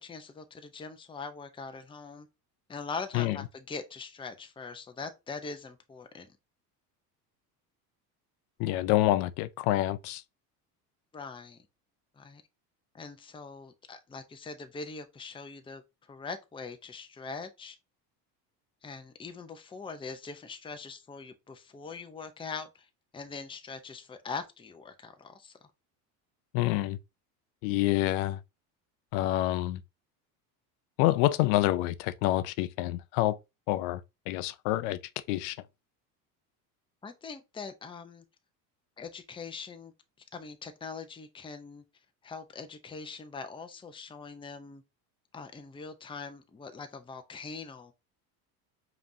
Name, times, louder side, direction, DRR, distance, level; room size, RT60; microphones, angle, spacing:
voice 1, 0.0-2.3 2.7-6.3 11.1-11.7 12.2-12.4 12.9-15.8 16.1-17.8 18.8-22.9 23.1-25.5 37.0-38.2 39.0-39.9 40.3-41.8 42.2-44.8 45.3-47.9, left 4 dB, 10° left, 0.6 m, -42 dB
voice 2, 8.6-10.2 26.5-27.0 27.6-28.4 29.1-29.8 31.0-33.4 33.7-34.0 34.3-35.0 35.3-35.6, left 16 dB, 65° left, 0.6 m, -27 dB
5.0 x 3.1 x 2.7 m
hypercardioid pair, 85°, 49 cm